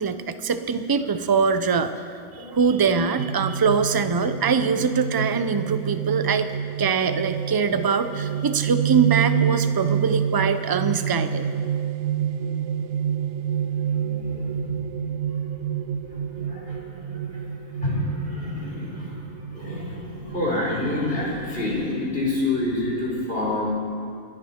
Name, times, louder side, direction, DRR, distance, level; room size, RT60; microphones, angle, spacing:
voice 1, 0.0-2.0 2.3-6.5 6.8-11.4, right 5 dB, 35° right, 10 dB, 0.3 m, -23 dB
sound 1, 3.2-22.4, right 9 dB, 75° right, 0.9 m, -28 dB
voice 2, 13.8-14.8 16.2-17.4 17.8-19.2 19.5-23.6, left 2 dB, 45° left, -5 dB, 4.4 m, -28 dB
27.0 x 11.0 x 4.4 m, 2.3 s
omnidirectional pair, 1.3 m